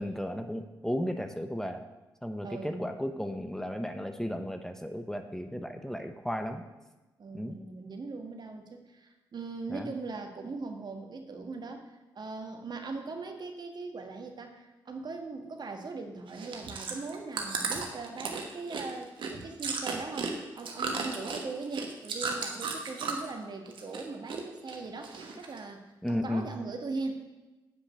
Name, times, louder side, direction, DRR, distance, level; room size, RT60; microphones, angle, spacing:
voice 1, 0.0-1.8 2.2-6.6 7.3-7.6 9.7-9.9 26.0-26.5, equal, 5° left, 7 dB, 0.9 m, -34 dB
voice 2, 2.4-2.9 7.2-27.2, right 3 dB, 55° right, 5 dB, 1.5 m, -40 dB
Chewing mastication, 16.3-23.4 23.7-24.4 24.7-25.6 26.1-26.2, right 4 dB, 70° right, 1.3 m, -35 dB
8.4 x 5.0 x 7.4 m, 1.1 s
supercardioid pair, 45°, 9 cm